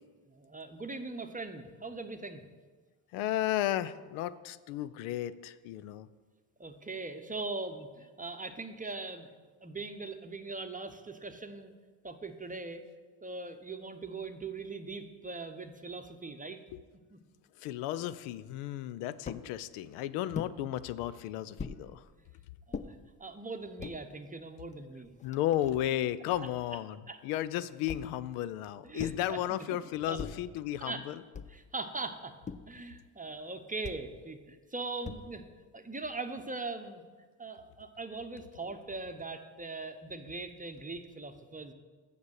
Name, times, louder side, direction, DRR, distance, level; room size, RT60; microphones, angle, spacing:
voice 1, 0.3-2.4 6.6-9.3 9.6-11.7 12.0-12.8 13.2-16.6 17.1-17.2 22.7-25.1 27.1-27.2 28.8-29.8 30.1-30.2 30.8-31.0 31.5-32.4 32.7-35.4 35.7-37.0 37.4-41.7, right 3 dB, 15° right, 7 dB, 0.8 m, -41 dB
voice 2, 3.1-6.1 16.7-16.8 17.6-22.1 25.2-31.2, left 13 dB, 80° left, 16 dB, 0.6 m, -34 dB
sound 1, 19.3-19.5 20.3-20.6 21.6-21.8 22.7-22.9 23.6-24.0 24.7-24.8 25.0-26.1 27.9-28.2 29.0-29.3 30.2-30.5 31.3-31.7 32.5-32.8 33.8-34.1 35.0-35.5, left 5 dB, 15° left, 0.4 m, -41 dB
7.1 x 6.8 x 6.4 m, 1.4 s
hypercardioid pair, 60°, 50 cm